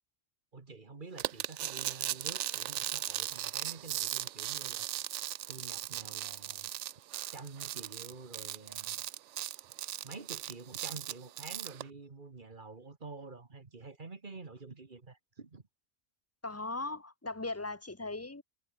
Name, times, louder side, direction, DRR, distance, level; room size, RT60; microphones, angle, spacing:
voice 1, 0.5-4.9 5.5-6.7 7.3-9.0 10.0-15.6, right 3 dB, 40° right, 1.7 m, -48 dB
sound 1, 1.2-11.8, right 13 dB, 70° right, 0.8 m, -38 dB
voice 2, 16.4-18.4, left 2 dB, 10° left, 1.6 m, -38 dB
omnidirectional pair, 1.4 m